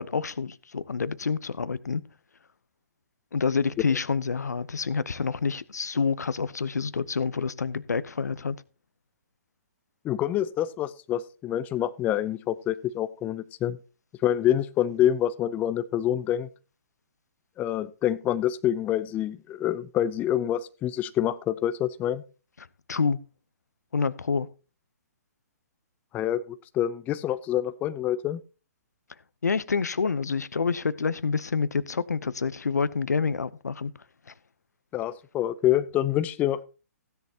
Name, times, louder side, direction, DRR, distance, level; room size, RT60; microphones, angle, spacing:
voice 1, 0.0-2.0 3.3-8.6 22.9-23.2 23.9-24.5 29.4-33.9, left 5 dB, 75° left, 0.8 m, -27 dB
voice 2, 10.0-13.8 14.2-16.5 17.6-22.2 26.1-26.4 26.7-28.4 34.9-36.6, left 11 dB, 20° left, 0.5 m, -26 dB
16.0 x 10.5 x 2.9 m
figure-of-eight pair, 125°, 9 cm